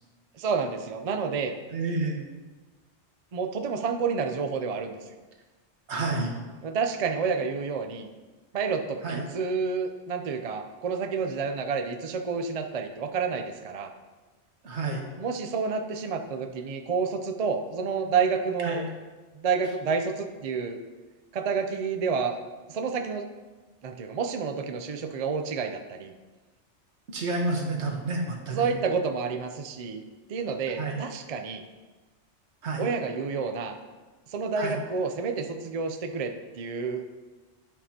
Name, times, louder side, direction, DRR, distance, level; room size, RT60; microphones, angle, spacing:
voice 1, 0.3-1.5 3.3-5.1 6.6-8.1 8.5-13.9 15.2-18.8 19.3-20.8 21.3-22.4 22.7-23.3 23.8-26.1 28.5-30.0 30.3-31.6 32.8-33.8 34.3-37.0, right 5 dB, 50° right, 6 dB, 0.4 m, -29 dB
voice 2, 1.7-2.2 5.9-6.3 9.0-9.2 14.6-15.0 18.6-18.8 27.1-28.7 30.8-31.0 32.6-32.9 34.6-34.8, right 3 dB, 70° right, 0 dB, 1.5 m, -29 dB
10.5 x 5.5 x 2.8 m, 1.3 s
omnidirectional pair, 1.2 m